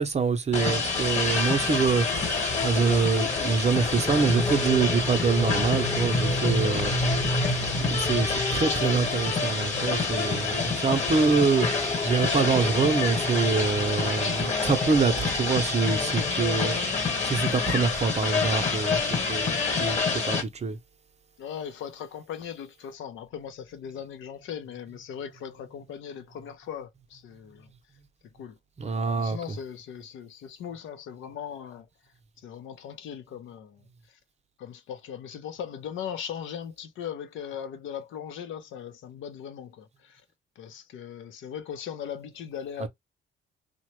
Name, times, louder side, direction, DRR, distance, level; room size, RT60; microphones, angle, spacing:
voice 1, 0.0-7.0 7.8-16.8 17.2-20.8 28.8-29.6 42.8-42.9, right 5 dB, 35° right, 0.7 m, -25 dB
sound 1, 0.5-20.4, left 4 dB, 35° left, 1.2 m, -27 dB
sound 2, 2.5-17.3, equal, 15° left, 0.7 m, -33 dB
voice 2, 21.4-27.7 28.3-28.6 29.1-31.9 32.4-34.2 34.6-40.2 40.6-42.9, left 8 dB, 80° left, 0.6 m, -39 dB
2.9 x 2.1 x 3.0 m
cardioid pair, 90°, 20 cm